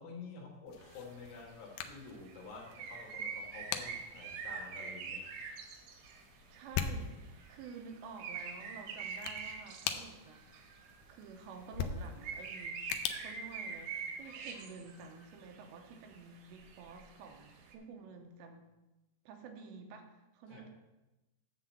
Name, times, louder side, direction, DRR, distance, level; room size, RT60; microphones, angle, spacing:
voice 1, 0.0-5.8 20.5-20.6, left 4 dB, 65° left, -1 dB, 2.8 m, -50 dB
sound 1, 0.7-14.3, left 7 dB, 85° left, 2.2 m, -44 dB
sound 2, 0.8-1.1 1.9-6.2 6.6-11.0 11.4-11.5 11.9-15.7 16.1-17.8, right 5 dB, 70° right, 2.3 m, -44 dB
voice 2, 6.5-10.4 11.1-12.8 13.1-18.6 19.3-20.7, right 5 dB, 85° right, 4 dB, 3.1 m, -50 dB
9.4 x 3.8 x 7.2 m, 1.0 s
omnidirectional pair, 5.1 m